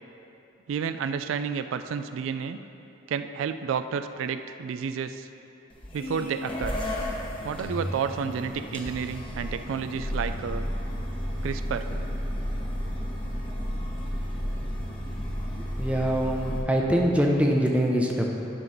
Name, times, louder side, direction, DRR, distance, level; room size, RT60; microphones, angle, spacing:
voice 1, 0.7-2.6 3.1-5.3 5.9-6.7 7.4-10.7 11.4-11.9, right 6 dB, 80° right, 10 dB, 0.3 m, -31 dB
sound 1, 5.7-16.6, equal, 25° left, 1.0 m, -32 dB
voice 2, 15.8-18.3, equal, 5° right, -1 dB, 0.7 m, -23 dB
11.0 x 3.9 x 5.8 m, 2.8 s
head